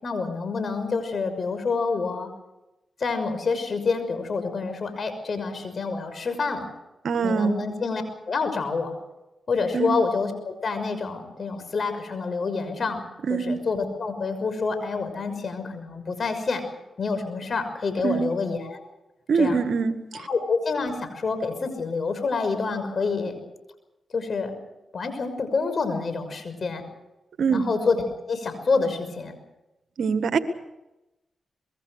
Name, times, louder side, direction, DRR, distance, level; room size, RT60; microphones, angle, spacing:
voice 1, 0.0-2.3 3.0-6.7 7.2-9.0 9.5-13.0 13.3-16.6 17.0-18.8 19.3-19.6 20.1-23.4 24.1-24.5 24.9-26.8 27.5-28.0 28.3-29.3, left 4 dB, 60° left, 9 dB, 6.1 m, -27 dB
voice 2, 7.0-7.6 9.7-10.0 13.3-13.6 18.0-18.3 19.3-20.2 27.4-27.6 30.0-30.4, right 5 dB, 75° right, 9 dB, 1.8 m, -23 dB
25.0 x 22.0 x 6.6 m, 0.96 s
supercardioid pair, 45°, 0 cm